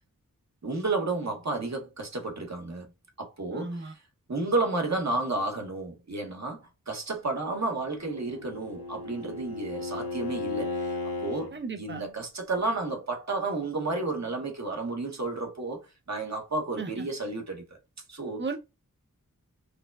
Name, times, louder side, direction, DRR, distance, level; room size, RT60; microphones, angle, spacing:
voice 1, 0.6-2.9 3.2-3.9 4.3-10.9 11.2-17.6 18.1-18.4, right 2 dB, 50° right, 1.0 m, -32 dB
voice 2, 3.5-3.9 11.5-12.0 16.8-17.1 18.4-18.6, right 4 dB, 35° right, 0.6 m, -35 dB
Bowed string instrument, 7.8-11.5, left 2 dB, 85° left, 0.7 m, -35 dB
4.8 x 2.1 x 2.3 m
wide cardioid pair, 60°, 34 cm